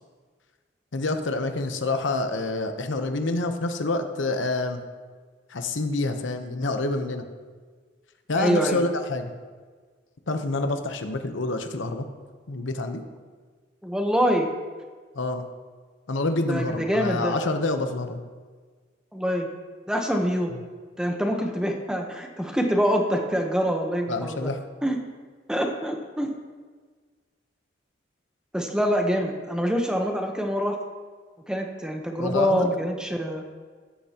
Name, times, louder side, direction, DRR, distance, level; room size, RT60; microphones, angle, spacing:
voice 1, 0.9-4.8 5.5-7.3 8.3-9.3 10.3-12.1 12.5-13.0 15.1-15.5 16.1-18.2 20.5-20.6 24.1-24.6 32.2-32.7, left 2 dB, 85° left, 6 dB, 0.9 m, -27 dB
voice 2, 8.4-8.8 13.8-14.5 16.5-17.4 19.1-19.5 19.9-20.5 21.0-24.5 24.8-25.0 25.5-26.3 28.5-30.8 31.5-33.5, equal, 5° right, 3 dB, 0.9 m, -25 dB
14.0 x 10.5 x 2.9 m, 1.5 s
head